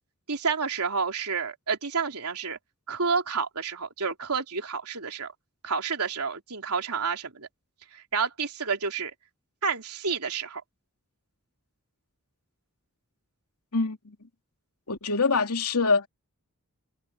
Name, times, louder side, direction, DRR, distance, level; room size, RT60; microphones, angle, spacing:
voice 1, 0.3-2.6 2.9-5.3 5.6-7.5 7.9-9.1 9.6-10.6, right 5 dB, 90° right, 3.3 m, -29 dB
voice 2, 13.7-14.2 14.9-16.1, left 4 dB, 85° left, 2.8 m, -24 dB
head